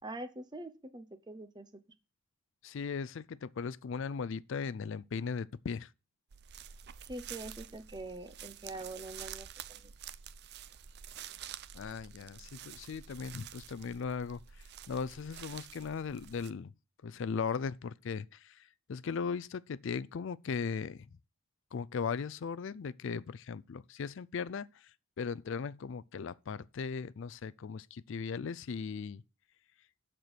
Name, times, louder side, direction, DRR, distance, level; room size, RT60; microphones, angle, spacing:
voice 1, 0.0-1.7 7.1-9.9, right 2 dB, 20° right, 0.8 m, -44 dB
voice 2, 2.6-5.9 11.7-16.7 17.0-21.1 21.7-24.9 25.2-29.2, left 5 dB, 65° left, 0.4 m, -38 dB
sound 1, 6.3-16.5, right 9 dB, 55° right, 0.5 m, -49 dB
12.5 x 4.5 x 6.7 m
head